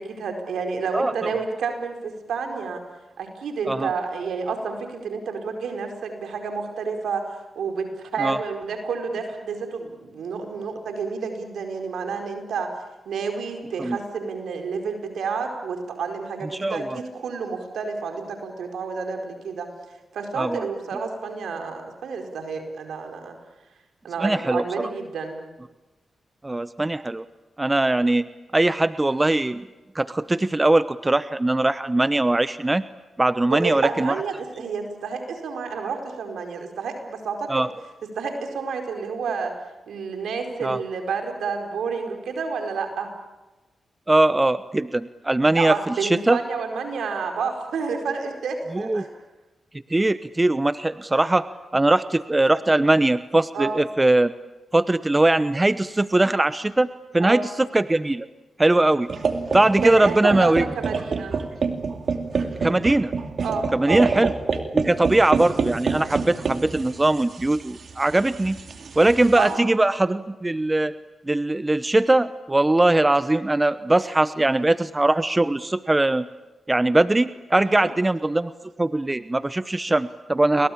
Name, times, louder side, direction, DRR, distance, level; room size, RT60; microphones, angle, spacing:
voice 1, 0.0-2.8 3.2-12.7 13.0-19.7 20.1-23.4 24.0-25.4 33.5-37.6 38.0-39.5 39.9-43.1 45.5-49.1 53.5-53.8 57.2-57.5 59.8-61.4 63.4-64.1 69.4-69.6 77.6-77.9 80.5-80.7, right 5 dB, 75° right, 4 dB, 4.7 m, -30 dB
voice 2, 0.9-1.3 3.7-3.9 8.2-8.4 13.8-14.0 16.5-17.0 20.3-20.6 24.2-24.6 26.4-27.2 27.6-29.7 29.9-32.8 33.2-34.2 37.5-37.7 40.6-40.8 44.1-46.4 48.7-49.1 49.9-51.5 51.7-54.3 54.7-56.9 57.1-58.3 58.6-59.1 59.5-60.6 62.6-63.1 63.7-64.3 64.7-68.6 69.0-70.9 71.2-76.3 76.7-78.5 78.8-80.7, right 2 dB, 25° right, 14 dB, 0.9 m, -21 dB
sound 1, 59.1-69.5, right 5 dB, 60° right, 2.6 m, -28 dB
30.0 x 23.0 x 8.7 m, 1.1 s
supercardioid pair, 40°, 0 cm